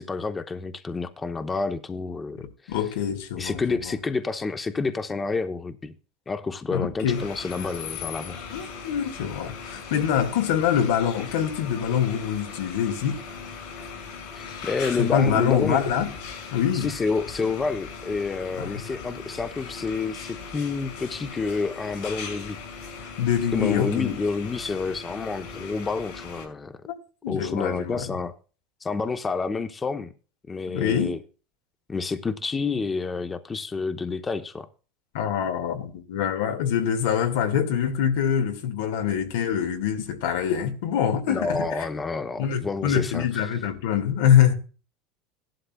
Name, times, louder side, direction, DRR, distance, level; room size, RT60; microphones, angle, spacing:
voice 1, 0.0-2.8 3.4-5.9 6.3-8.4 14.3-15.8 16.7-22.6 23.5-26.8 27.3-28.3 28.8-30.1 30.5-31.2 31.9-34.7 41.3-43.6, left 4 dB, 15° left, 0.7 m, -29 dB
voice 2, 2.4-3.9 6.7-7.2 8.5-13.2 15.0-16.1 16.5-16.9 18.6-18.7 23.2-24.2 26.9-27.0 27.2-28.0 30.7-31.1 35.1-41.7 42.4-44.5, left 8 dB, 85° left, 1.8 m, -24 dB
sound 1, 7.1-26.5, left 5 dB, 70° left, 5.5 m, -39 dB
16.5 x 11.5 x 2.3 m
supercardioid pair, 140°, 0 cm